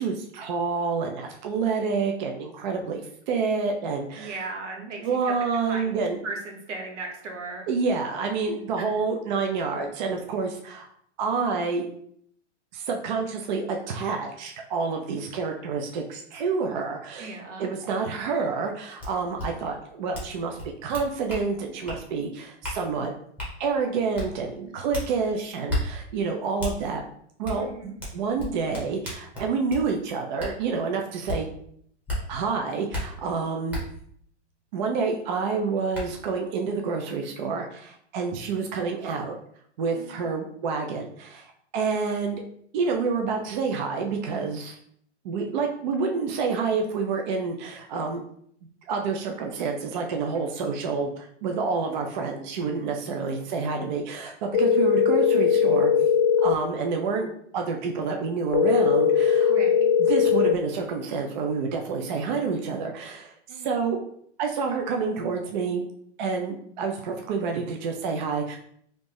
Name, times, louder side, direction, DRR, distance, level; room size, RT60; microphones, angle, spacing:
voice 1, 0.0-3.0 3.3-4.4 5.0-6.2 7.7-10.9 11.2-11.8 12.7-23.1 23.6-27.0 27.4-31.5 32.3-33.8 34.7-39.4 39.8-42.4 42.7-44.8 45.2-48.2 48.9-55.9 56.4-57.3 57.5-59.5 60.0-64.0 64.4-65.8 66.2-68.6, right 5 dB, 40° right, 3 dB, 0.4 m, -28 dB
voice 2, 4.2-5.0 5.2-5.3 5.6-7.7 8.8-8.9 17.2-17.7 24.6-24.8 27.6-28.0 39.9-40.3 50.3-50.4 59.5-59.9 63.5-63.7, right 3 dB, 80° right, 1 dB, 1.1 m, -37 dB
sound 1, 19.0-19.1 19.4-19.5 20.1-20.3 20.6-21.4 21.9-22.0 22.6-22.8 23.4-23.5 24.1-24.3 24.9-25.1 25.7-25.8 26.6-26.7 27.4-27.6 28.0-29.8 30.4-30.5 31.3-31.4 32.1-32.2 32.9-33.0 33.7-33.8 35.3-35.4 35.9-36.0, left 1 dB, 5° right, 0.9 m, -31 dB
sound 2, 54.5-56.5 58.5-60.5, left 8 dB, 45° left, 0.6 m, -20 dB
3.2 x 2.6 x 3.2 m, 0.65 s
hypercardioid pair, 145°, 36 cm